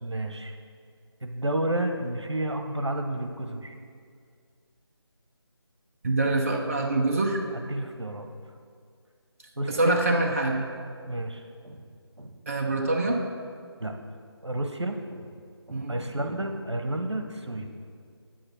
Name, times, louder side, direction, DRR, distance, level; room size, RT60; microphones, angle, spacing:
voice 1, 0.0-0.5 1.2-3.8 7.5-8.3 9.6-10.0 11.0-11.8 12.2-12.3 13.8-14.0 14.4-15.3 15.7-17.7, right 1 dB, 85° right, 5 dB, 1.0 m, -31 dB
voice 2, 6.0-7.4 9.7-10.7 12.5-13.2 15.7-16.0, right 2 dB, 30° right, 1 dB, 0.7 m, -25 dB
8.8 x 7.8 x 4.4 m, 2.1 s
figure-of-eight pair, 160°, 14 cm